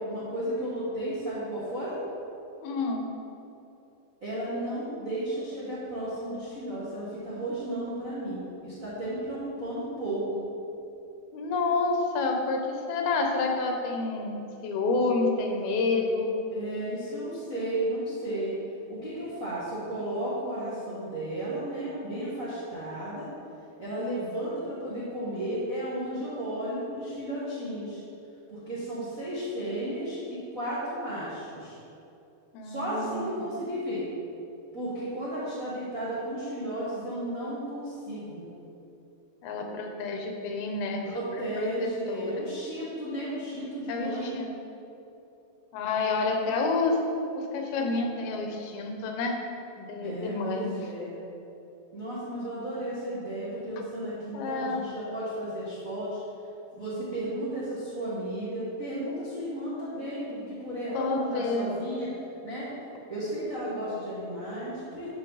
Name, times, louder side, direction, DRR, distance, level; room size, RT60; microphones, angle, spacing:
voice 1, 0.0-1.9 4.2-10.5 16.5-18.5 18.9-23.3 23.8-28.0 28.5-31.8 32.6-34.1 34.7-38.5 41.0-44.4 50.0-51.2 51.9-56.2 56.7-62.1 62.4-62.7 63.1-65.1, right 1 dB, 55° right, -10 dB, 0.9 m, -33 dB
voice 2, 2.6-3.0 4.5-4.7 11.3-16.3 32.5-33.5 39.4-41.0 41.3-42.3 43.9-44.6 45.7-47.0 47.3-49.4 49.8-50.8 54.3-54.8 60.9-61.7, left 3 dB, 85° left, 3 dB, 2.8 m, -29 dB
12.0 x 5.4 x 4.0 m, 2.8 s
omnidirectional pair, 4.3 m